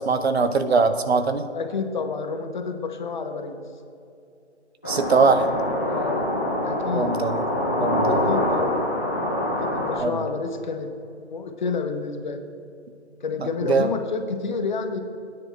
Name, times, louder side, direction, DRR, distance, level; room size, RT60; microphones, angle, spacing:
voice 1, 0.0-1.5 4.8-5.5 6.9-7.5 7.8-8.2 10.0-10.2 13.7-13.9, right 4 dB, 65° right, 9 dB, 0.8 m, -21 dB
voice 2, 1.5-3.6 5.9-6.3 6.6-7.2 8.1-8.9 9.4-12.4 13.2-15.0, left 4 dB, 40° left, 6 dB, 0.9 m, -30 dB
sound 1, 4.8-10.0, left 1 dB, 10° left, 0.4 m, -25 dB
18.0 x 9.7 x 2.3 m, 2.5 s
figure-of-eight pair, 150°, 35 cm